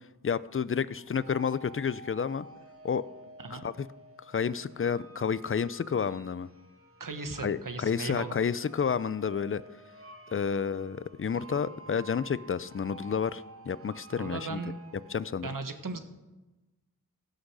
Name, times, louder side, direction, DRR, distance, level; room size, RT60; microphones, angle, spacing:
voice 1, 0.2-2.5 2.8-3.1 3.5-3.9 4.3-6.5 7.4-9.6 10.3-14.6 15.1-15.5, left 6 dB, 35° left, 17 dB, 0.5 m, -30 dB
sound 1, 0.9-15.3, right 3 dB, 35° right, 1.7 m, -51 dB
voice 2, 7.0-8.4 14.2-14.8 15.4-16.0, right 3 dB, 55° right, 8 dB, 1.3 m, -37 dB
16.0 x 6.4 x 4.9 m, 1.1 s
cardioid pair, 45°, 38 cm